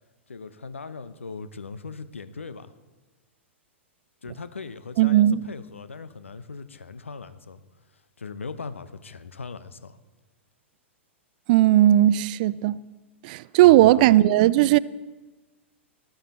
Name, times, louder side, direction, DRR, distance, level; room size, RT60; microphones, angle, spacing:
voice 1, 0.3-2.7 4.2-7.6 8.2-10.0 13.6-14.2, left 4 dB, 75° left, 0.8 m, -39 dB
voice 2, 5.0-5.4 11.5-12.8 13.2-14.8, right 14 dB, 40° right, 0.4 m, -17 dB
18.5 x 13.0 x 4.3 m
figure-of-eight pair, 100°, 7 cm